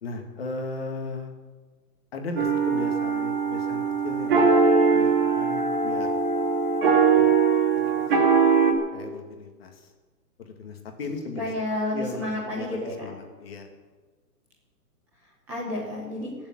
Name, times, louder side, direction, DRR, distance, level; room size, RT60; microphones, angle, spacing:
voice 1, 0.0-1.3 2.1-4.6 4.9-6.1 7.1-7.4 7.8-8.1 8.9-9.9 10.4-11.6 11.9-13.7, left 3 dB, 40° left, 4 dB, 2.1 m, -36 dB
sound 1, 2.4-8.7, right 5 dB, 35° right, 2.4 m, -21 dB
voice 2, 11.3-13.1 15.5-16.3, left 1 dB, 5° right, -7 dB, 1.0 m, -30 dB
18.5 x 7.3 x 8.8 m, 1.4 s
hypercardioid pair, 175°, 46 cm